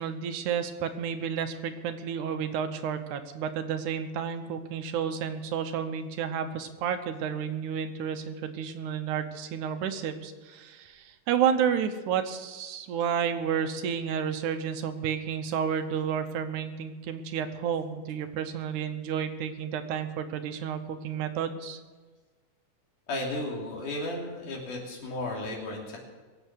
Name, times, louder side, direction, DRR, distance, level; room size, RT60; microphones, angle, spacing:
voice 1, 0.0-21.8, right 8 dB, 75° right, 9 dB, 2.4 m, -31 dB
voice 2, 23.1-26.0, left 1 dB, 80° left, -1 dB, 4.5 m, -34 dB
22.5 x 8.1 x 6.3 m, 1.4 s
omnidirectional pair, 3.6 m